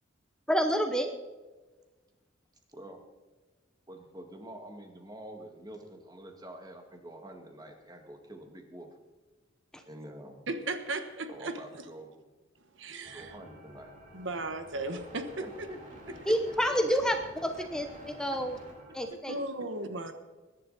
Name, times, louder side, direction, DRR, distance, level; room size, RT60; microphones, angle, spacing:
voice 1, 0.5-1.1 9.7-9.8 16.3-17.2 17.4-17.9 18.2-18.6 18.9-19.3, equal, 5° left, 5 dB, 0.8 m, -28 dB
voice 2, 2.7-3.0 3.9-8.9 9.8-10.4 11.3-12.1 13.1-13.9 15.4-15.8 16.1-16.2 18.9-19.2, right 1 dB, 20° right, 4 dB, 2.0 m, -47 dB
voice 3, 10.5-11.6 12.8-13.3 14.1-15.4 19.3-20.1, right 2 dB, 70° right, 8 dB, 1.3 m, -36 dB
sound 1, 13.0-19.0, equal, 45° right, 4.6 m, -50 dB
21.0 x 11.0 x 4.2 m, 1.3 s
head